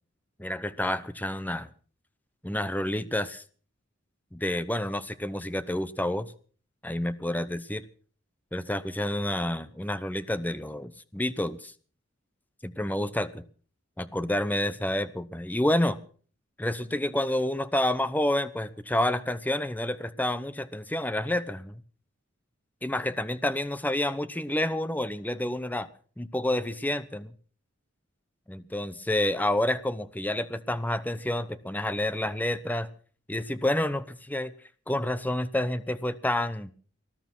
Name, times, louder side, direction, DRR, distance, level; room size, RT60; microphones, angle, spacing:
voice 1, 0.4-1.7 2.4-3.4 4.3-6.3 6.8-7.8 8.5-11.7 12.6-13.3 14.0-16.0 16.6-21.8 22.8-25.9 26.2-27.3 28.5-32.9 33.3-34.5 34.9-36.7, left 1 dB, 10° left, 14 dB, 0.8 m, -29 dB
19.5 x 12.0 x 6.0 m, 0.42 s
head